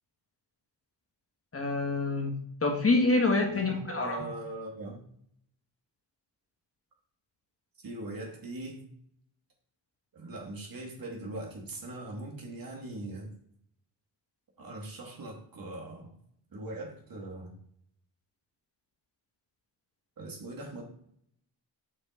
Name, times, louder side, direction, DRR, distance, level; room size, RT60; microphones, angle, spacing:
voice 1, 1.5-4.3, left 3 dB, 30° left, 3 dB, 1.4 m, -27 dB
voice 2, 3.5-5.0 7.8-8.8 10.1-13.3 14.6-16.1 16.5-17.5 20.2-20.8, right 2 dB, 50° right, -1 dB, 2.9 m, -41 dB
7.3 x 6.2 x 4.2 m, 0.66 s
cardioid pair, 125°, 45 cm